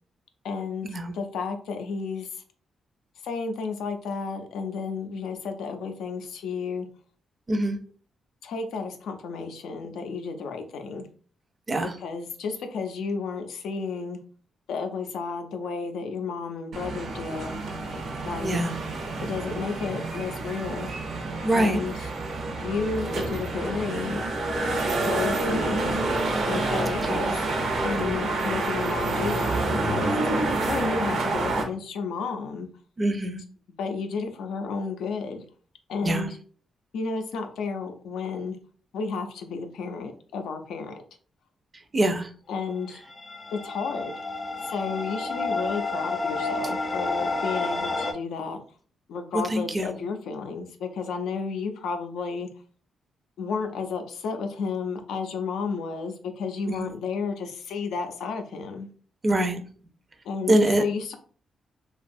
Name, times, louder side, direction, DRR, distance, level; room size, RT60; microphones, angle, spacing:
voice 1, 0.4-2.4 3.2-6.9 8.4-11.1 11.8-14.2 14.7-17.6 18.2-18.6 19.2-20.9 21.5-22.1 22.5-24.2 24.9-26.0 26.4-27.5 27.8-30.2 30.7-32.7 33.8-35.4 35.9-36.4 36.9-38.6 38.9-41.0 42.5-43.0 43.5-44.1 44.6-48.6 49.1-52.5 53.4-58.9 60.2-61.2, left 5 dB, 90° left, 5 dB, 0.4 m, -32 dB
sound 1, 16.7-31.6, right 2 dB, 70° right, 0.6 m, -28 dB
voice 2, 18.4-18.7 21.4-21.8 26.9-27.2 33.0-33.4 36.0-36.3 41.9-42.3 49.5-49.9 56.7-57.0 59.2-59.6 60.5-60.8, right 1 dB, 30° right, 7 dB, 0.4 m, -24 dB
sound 2, 43.1-48.1, left 3 dB, 25° left, 0.4 m, -30 dB
2.6 x 2.3 x 2.5 m, 0.42 s
cardioid pair, 90°, 0 cm